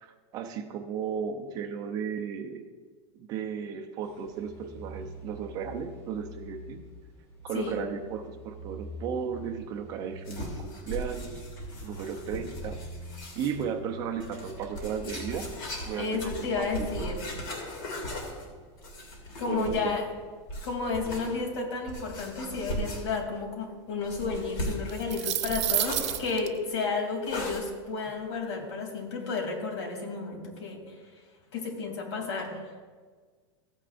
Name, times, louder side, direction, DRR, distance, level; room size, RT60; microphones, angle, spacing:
voice 1, 0.0-2.6 3.1-6.8 7.4-11.4 11.8-12.8 13.3-15.5 15.8-17.1 19.4-19.9, right 7 dB, 25° right, 5 dB, 0.6 m, -35 dB
sound 1, 4.0-22.5, equal, 15° left, 2.9 m, -47 dB
wooden box with hinge shake, 10.2-13.6 14.2-20.0 20.5-21.3 21.9-23.3 24.0-26.2 27.3-27.6, equal, 50° left, 2.6 m, -38 dB
voice 2, 16.0-17.3 19.4-20.0 20.6-30.8 31.5-32.6, left 4 dB, 75° left, 1 dB, 3.0 m, -32 dB
sound 2, 24.9-26.5, right 13 dB, 80° right, 0.8 m, -29 dB
15.5 x 9.2 x 2.5 m, 1.5 s
supercardioid pair, 180°, 15 cm